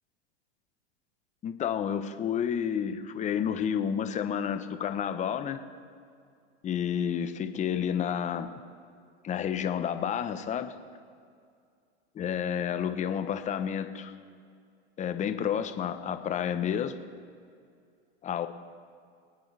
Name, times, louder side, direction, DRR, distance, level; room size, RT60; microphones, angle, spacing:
voice 1, 1.4-5.6 6.6-8.5 9.2-10.7 12.1-14.1 15.0-16.9 18.2-18.5, left 8 dB, 20° left, 8 dB, 0.9 m, -30 dB
26.0 x 9.3 x 3.4 m, 2.3 s
hypercardioid pair, 125°, 33 cm